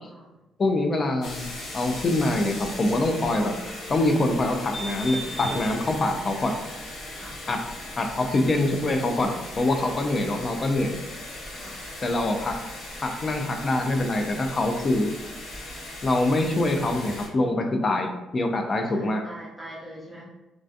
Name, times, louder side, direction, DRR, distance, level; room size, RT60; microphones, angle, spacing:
voice 1, 0.6-3.6 3.9-6.6 7.5-7.6 8.0-11.0 12.0-12.6 13.0-15.1 16.0-19.2, left 2 dB, 30° left, 4 dB, 0.3 m, -24 dB
sound 1, 1.2-17.3, left 1 dB, 80° left, 0.7 m, -38 dB
voice 2, 7.1-7.4 11.5-11.9 18.9-20.2, right 1 dB, 5° right, -5 dB, 0.7 m, -43 dB
2.4 x 2.2 x 2.5 m, 1.0 s
cardioid pair, 140°, 0 cm